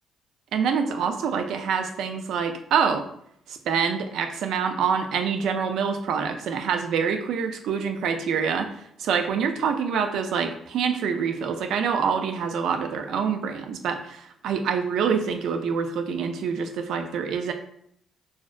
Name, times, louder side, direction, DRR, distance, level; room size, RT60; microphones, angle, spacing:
voice 1, 0.5-3.0 3.5-17.5, right 6 dB, 75° right, 6 dB, 0.3 m, -26 dB
2.6 x 2.0 x 2.4 m, 0.68 s
supercardioid pair, 55°, 0 cm